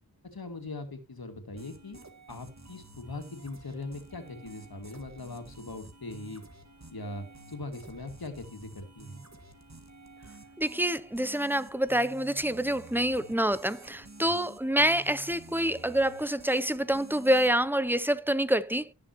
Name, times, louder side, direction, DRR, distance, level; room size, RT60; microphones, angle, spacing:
voice 1, 0.3-2.0 2.3-6.4 6.9-9.2 14.2-14.4, left 2 dB, 75° left, 2.3 m, -41 dB
sound 1, 1.6-17.6, right 2 dB, 45° right, 1.9 m, -51 dB
voice 2, 10.6-18.9, right 1 dB, 5° right, 0.6 m, -27 dB
18.5 x 6.8 x 3.0 m
wide cardioid pair, 50°, 37 cm